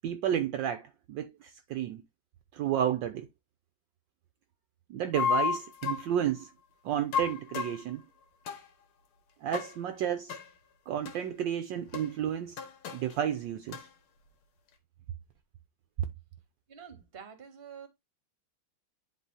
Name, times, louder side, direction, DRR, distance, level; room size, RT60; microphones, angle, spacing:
voice 1, 0.0-2.0 2.5-3.3 4.9-6.5 6.8-8.1 9.4-10.3 10.9-12.6 12.9-13.8, right 10 dB, 75° right, 1.2 m, -31 dB
sound 1, 5.1-6.1 7.1-7.8 8.5-8.7 9.5-9.8 10.3-10.4 11.1-11.2 11.9-12.1 12.6-13.2 13.7-13.9, left 7 dB, 90° left, 2.0 m, -32 dB
voice 2, 16.7-17.9, right 7 dB, 35° right, 1.2 m, -47 dB
10.5 x 3.7 x 2.7 m
omnidirectional pair, 2.3 m